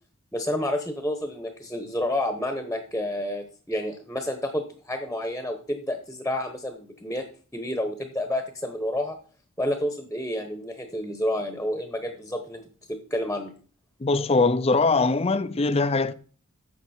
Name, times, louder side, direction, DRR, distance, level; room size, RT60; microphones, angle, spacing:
voice 1, 0.3-7.3 7.5-9.2 9.6-12.6 12.9-13.5, left 1 dB, 5° left, 1.0 m, -29 dB
voice 2, 14.0-16.1, left 3 dB, 25° left, 0.5 m, -22 dB
10.5 x 7.1 x 4.3 m
head